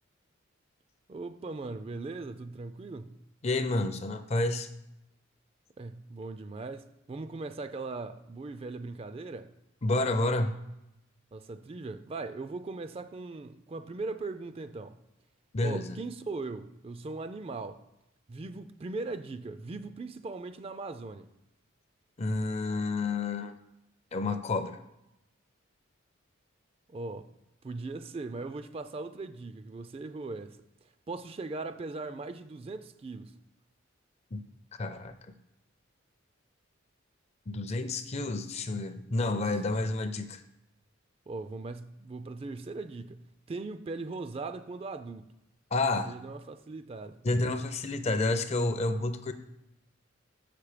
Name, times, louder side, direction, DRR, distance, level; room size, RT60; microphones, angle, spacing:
voice 1, 1.1-3.2 5.8-9.5 11.3-15.0 15.6-17.8 18.3-21.3 26.9-27.3 27.6-30.6 31.1-33.3 39.3-39.4 41.3-45.3 46.1-47.2, right 3 dB, 30° right, 0.3 m, -39 dB
voice 2, 3.4-4.7 9.8-10.6 15.5-16.0 22.2-23.5 24.1-24.8 34.3-34.4 34.8-35.1 37.5-40.4 45.7-46.1 47.2-49.3, left 2 dB, 30° left, 0.4 m, -29 dB
6.8 x 5.9 x 5.0 m
head